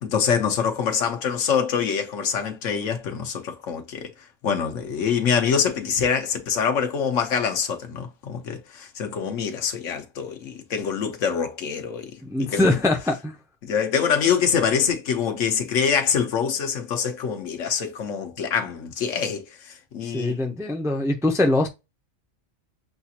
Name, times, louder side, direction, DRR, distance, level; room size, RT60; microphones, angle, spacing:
voice 1, 0.0-4.1 4.4-12.1 12.4-12.8 13.6-19.4 19.9-20.4, left 7 dB, 80° left, 1.2 m, -25 dB
voice 2, 12.2-13.4 20.1-21.7, left 2 dB, 5° right, 0.4 m, -22 dB
6.7 x 2.4 x 2.8 m
omnidirectional pair, 1.3 m